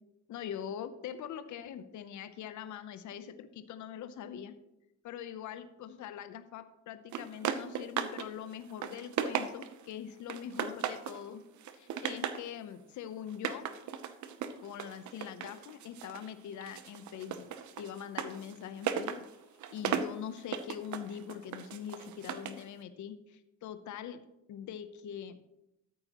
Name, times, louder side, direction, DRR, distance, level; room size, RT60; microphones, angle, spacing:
voice 1, 0.3-4.5 5.0-11.4 11.7-13.6 14.6-17.5 17.8-19.3 19.7-24.2 24.5-25.4, left 9 dB, 75° left, 10 dB, 0.8 m, -43 dB
sound 1, 7.1-8.3 8.6-9.8 10.3-11.2 11.6-12.5 13.3-16.3 16.6-22.6, right 8 dB, 70° right, 0.8 m, -37 dB
13.0 x 8.7 x 3.0 m, 0.87 s
cardioid pair, 90°, 30 cm